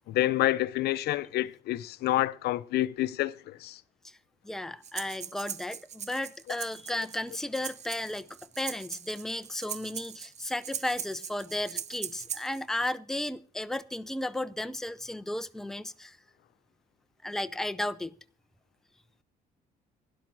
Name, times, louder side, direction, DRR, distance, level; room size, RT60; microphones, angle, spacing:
voice 1, 0.1-3.8, left 15 dB, 70° left, 0.6 m, -28 dB
voice 2, 4.4-16.2 17.2-18.2, left 1 dB, 5° left, 0.6 m, -34 dB
Breathing, 4.8-12.6, right 8 dB, 40° right, 0.8 m, -40 dB
12.0 x 10.5 x 6.1 m
cardioid pair, 110°, 17 cm